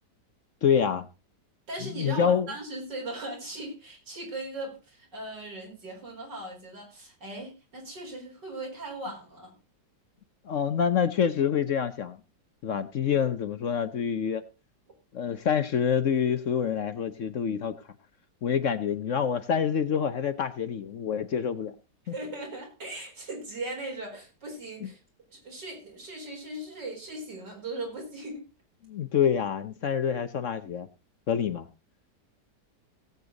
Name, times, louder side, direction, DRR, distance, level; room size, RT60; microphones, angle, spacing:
voice 1, 0.6-1.1 1.8-2.5 10.5-12.2 12.6-14.4 15.1-17.7 18.4-21.7 28.8-30.9 31.3-31.7, left 7 dB, 55° left, 11 dB, 1.0 m, -26 dB
voice 2, 1.7-9.5 22.1-25.0 25.3-28.5, right 2 dB, 90° right, 1 dB, 5.1 m, -38 dB
17.5 x 8.0 x 3.9 m, 0.29 s
omnidirectional pair, 1.8 m